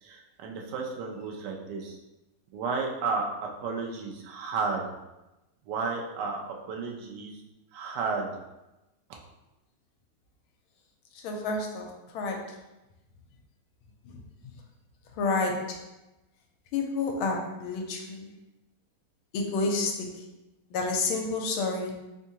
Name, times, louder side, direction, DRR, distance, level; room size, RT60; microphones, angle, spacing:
voice 1, 0.0-2.0 2.5-4.9 5.7-7.4 7.7-8.4 9.1-9.2, right 4 dB, 70° right, 0 dB, 1.0 m, -33 dB
voice 2, 11.1-12.6 14.0-14.6 15.1-15.8 16.7-18.3 19.3-20.2 20.7-22.1, left 3 dB, 80° left, 2 dB, 1.4 m, -30 dB
3.6 x 3.5 x 2.8 m, 0.98 s
omnidirectional pair, 2.4 m